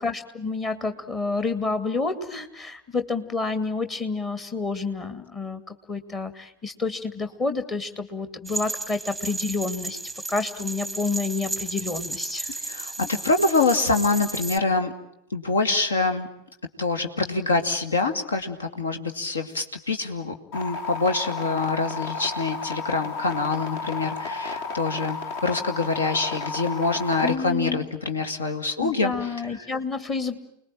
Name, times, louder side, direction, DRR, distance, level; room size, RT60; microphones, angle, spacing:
voice 1, 0.0-5.6 5.9-10.0 10.3-12.6 27.2-27.9 28.8-30.4, left 4 dB, 20° left, 9 dB, 2.4 m, -29 dB
sound 1, 8.4-14.6, right 2 dB, ahead, 1.3 m, -34 dB
voice 2, 12.6-14.9 15.3-16.3 16.8-29.3, left 3 dB, 70° left, 6 dB, 2.4 m, -25 dB
sound 2, 20.5-27.3, left 4 dB, 50° left, 2.3 m, -32 dB
29.5 x 20.5 x 9.0 m, 0.81 s
figure-of-eight pair, 90°, 0 cm